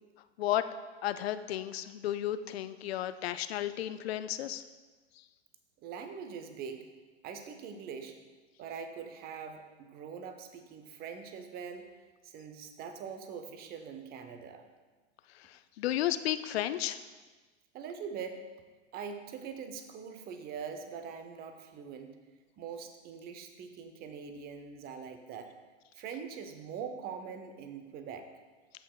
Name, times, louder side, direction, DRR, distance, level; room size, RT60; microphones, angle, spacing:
voice 1, 1.0-4.6 15.3-17.0, left 12 dB, 60° left, 12 dB, 0.5 m, -33 dB
voice 2, 5.8-6.9 7.2-8.2 8.6-11.9 12.2-14.7 17.7-18.4 18.9-22.2 22.6-25.5 25.9-28.3, right 6 dB, 25° right, 7 dB, 0.8 m, -43 dB
14.0 x 5.5 x 2.4 m, 1.3 s
hypercardioid pair, 105°, 36 cm